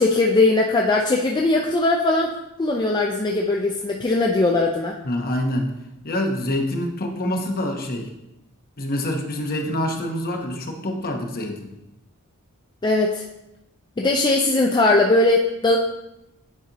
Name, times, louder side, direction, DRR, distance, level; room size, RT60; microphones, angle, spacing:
voice 1, 0.0-2.3 2.6-5.0 12.8-13.2 14.0-15.8, left 2 dB, 20° left, 0 dB, 0.4 m, -19 dB
voice 2, 5.0-5.7 6.0-8.1 8.8-11.7, left 1 dB, 45° left, 3 dB, 0.9 m, -26 dB
9.4 x 4.1 x 2.9 m, 0.89 s
head